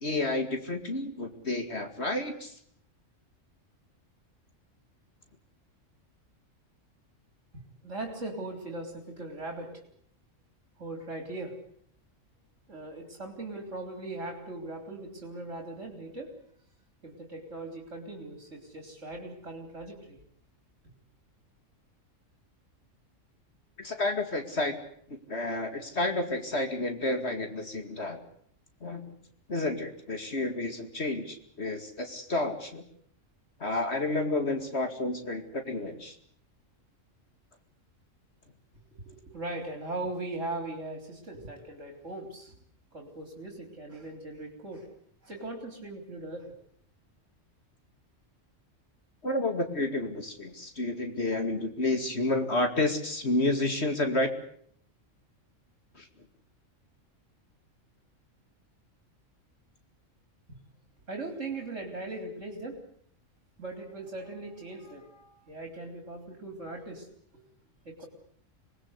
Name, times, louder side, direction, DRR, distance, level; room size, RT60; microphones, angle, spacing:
voice 1, 0.0-2.5 23.8-24.8 25.1-28.2 28.8-29.1 29.5-32.9 33.6-36.1 49.2-54.3 56.0-56.1, left 2 dB, 55° left, 6 dB, 2.6 m, -30 dB
voice 2, 7.5-9.8 10.8-11.6 12.7-16.3 17.0-20.2 38.9-42.6 42.9-44.9 45.2-46.5 60.5-60.6 61.1-62.8 63.6-67.1 67.3-67.4 67.9-68.1, right 2 dB, 65° right, 3 dB, 3.9 m, -39 dB
27.0 x 19.5 x 8.1 m, 0.65 s
omnidirectional pair, 1.3 m